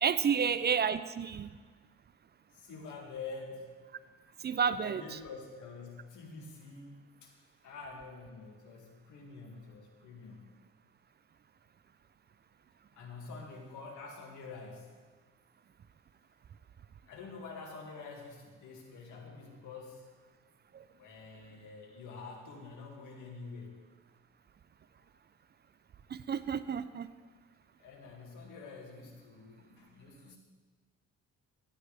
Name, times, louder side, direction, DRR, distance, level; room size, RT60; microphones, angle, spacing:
voice 1, 0.0-1.5 4.4-5.2 26.1-27.1, right 7 dB, 35° right, 14 dB, 0.4 m, -30 dB
voice 2, 2.5-3.7 4.1-4.2 4.7-7.3 7.6-10.5 12.9-14.9 17.1-20.0 21.0-23.8 25.1-25.2 27.8-30.4, left 4 dB, 80° left, 0 dB, 2.2 m, -47 dB
14.0 x 11.0 x 3.4 m, 1.5 s
cardioid pair, 90°, 30 cm